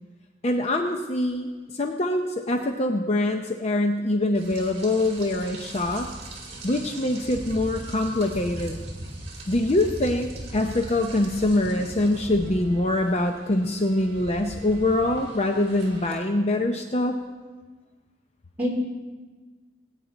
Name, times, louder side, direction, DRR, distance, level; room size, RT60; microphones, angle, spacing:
voice 1, 0.4-6.1 6.6-8.8 9.5-17.2, left 1 dB, 35° left, 4 dB, 0.6 m, -24 dB
voice 2, 1.7-2.0 17.4-17.6 18.6-18.8, left 1 dB, 10° right, -6 dB, 3.5 m, -29 dB
Rain, 4.3-16.1, right 1 dB, 35° right, 2.5 m, -39 dB
20.0 x 9.1 x 4.0 m, 1.3 s
head